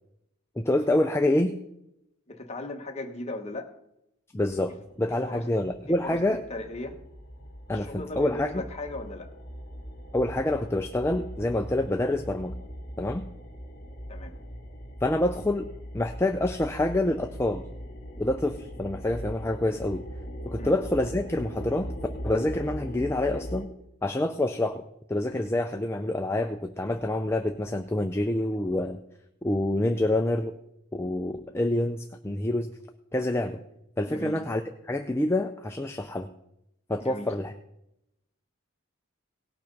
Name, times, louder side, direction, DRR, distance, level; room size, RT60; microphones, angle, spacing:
voice 1, 0.6-1.5 4.3-6.4 7.7-8.5 10.1-12.5 13.0-13.3 15.0-15.7 15.9-17.6 18.2-20.0 20.5-21.9 22.2-23.7 24.0-24.8 25.1-29.0 29.4-30.5 30.9-32.7 33.1-33.6 34.0-36.3 36.9-37.5, left 1 dB, 10° left, 6 dB, 0.4 m, -27 dB
voice 2, 2.3-3.7 4.7-4.8 5.3-5.4 5.9-7.0 7.7-9.3 14.1-14.3 20.6-20.7 34.1-34.4 37.0-37.3, left 2 dB, 30° left, 4 dB, 1.1 m, -37 dB
sound 1, 5.7-23.7, equal, 45° left, 2.0 m, -40 dB
18.0 x 6.0 x 5.2 m, 0.82 s
head